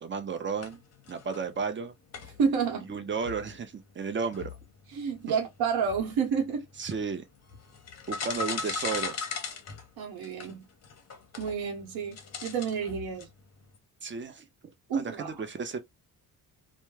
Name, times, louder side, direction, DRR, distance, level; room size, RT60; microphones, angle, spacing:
voice 1, 0.0-0.8 1.1-1.9 2.9-4.6 6.8-7.2 8.1-9.2 14.0-14.5 14.9-15.8, right 5 dB, 30° right, 0.6 m, -33 dB
sound 1, 0.6-1.8 2.1-13.8, left 5 dB, 40° left, 0.8 m, -40 dB
voice 2, 2.4-2.9 4.9-6.6 10.0-10.6 11.4-13.3 14.9-15.4, right 6 dB, 70° right, 0.9 m, -30 dB
2.2 x 2.1 x 3.1 m
cardioid pair, 85°, 38 cm